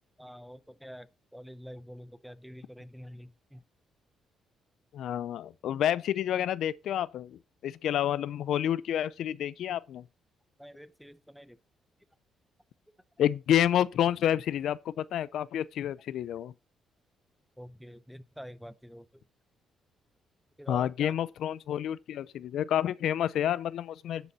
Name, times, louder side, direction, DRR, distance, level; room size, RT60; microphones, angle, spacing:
voice 1, 0.2-3.6 10.6-11.6 17.6-19.2 20.6-21.2, equal, ahead, 0.7 m, -46 dB
voice 2, 4.9-10.0 13.2-16.5 20.7-24.3, left 10 dB, 75° left, 0.5 m, -29 dB
10.0 x 7.0 x 4.2 m
cardioid pair, 90°, 0 cm